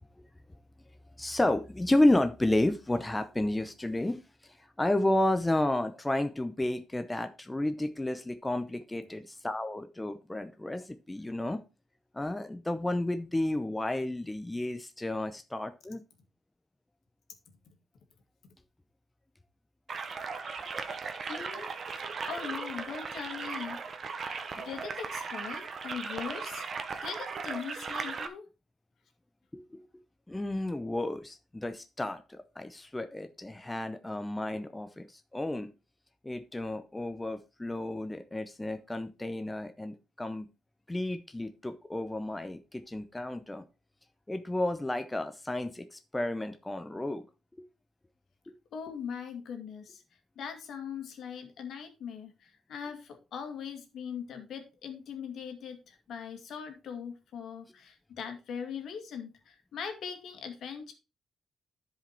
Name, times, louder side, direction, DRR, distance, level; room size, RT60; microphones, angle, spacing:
voice 1, 1.2-11.6 12.1-16.0 29.5-29.8 30.3-35.7 36.2-40.5 40.9-43.7 44.3-47.2 48.5-48.6, left 1 dB, 10° left, 9 dB, 0.7 m, -31 dB
sound 1, 19.9-28.3, right 5 dB, 45° right, 1.1 m, -37 dB
voice 2, 21.2-21.7 22.0-23.8 24.6-26.7 27.0-28.4 48.7-50.0 50.4-60.9, left 7 dB, 65° left, 6 dB, 2.1 m, -40 dB
11.0 x 5.1 x 4.4 m, 0.29 s
cardioid pair, 120°, 0 cm